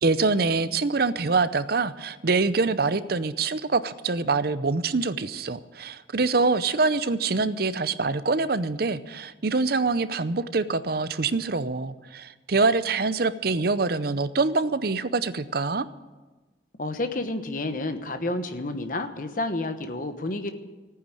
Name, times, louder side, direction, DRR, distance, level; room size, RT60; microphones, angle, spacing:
voice 1, 0.0-15.9, right 3 dB, 55° right, 13 dB, 0.6 m, -25 dB
voice 2, 16.8-20.5, left 2 dB, 45° left, 8 dB, 1.1 m, -30 dB
14.5 x 9.5 x 9.1 m, 1.2 s
head